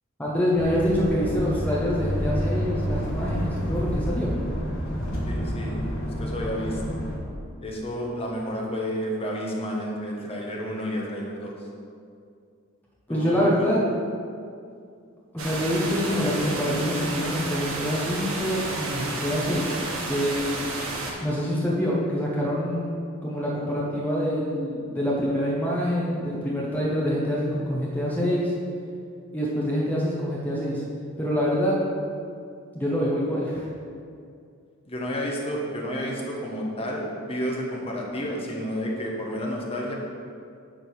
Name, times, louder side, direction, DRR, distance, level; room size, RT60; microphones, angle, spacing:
voice 1, 0.2-4.3 13.1-13.8 15.3-20.7 21.2-22.9 23.2-28.5 29.3-30.8 31.2-31.8 32.7-33.7, equal, 10° left, -6 dB, 1.0 m, -26 dB
sound 1, 0.6-7.2, equal, 70° left, 1.7 m, -29 dB
voice 2, 5.3-7.0 7.6-11.5 13.1-13.7 34.8-39.9, equal, 30° left, -2 dB, 1.3 m, -31 dB
sound 2, 15.4-21.1, right 2 dB, 85° right, 1.4 m, -31 dB
10.0 x 3.8 x 6.5 m, 2.4 s
head